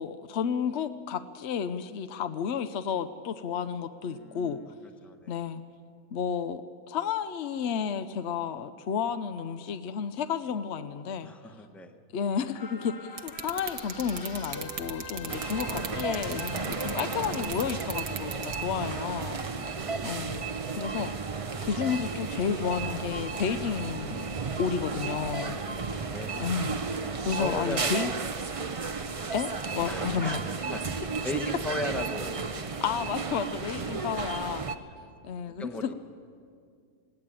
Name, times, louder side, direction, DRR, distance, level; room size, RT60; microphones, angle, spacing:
voice 1, 0.0-4.6 5.3-5.6 6.1-6.6 6.9-11.3 12.1-19.4 20.0-20.4 20.7-21.1 21.6-25.6 26.4-26.8 27.2-28.1 29.3-30.5 32.8-34.6 35.2-35.9, left 7 dB, 60° left, 10 dB, 0.8 m, -31 dB
voice 2, 4.1-4.7 5.0-5.3 11.2-11.9 19.4-20.1 25.4-26.5 27.3-28.1 29.8-32.7 33.8-34.0 35.6-35.9, left 1 dB, ahead, 5 dB, 1.0 m, -38 dB
sound 1, 12.6-19.2 19.6-19.7, left 3 dB, 35° left, 1.8 m, -44 dB
sound 2, 13.2-18.6, right 7 dB, 85° right, 1.7 m, -35 dB
sound 3, 15.3-34.8, right 4 dB, 35° right, 0.5 m, -33 dB
20.5 x 17.0 x 8.9 m, 2.2 s
omnidirectional pair, 1.6 m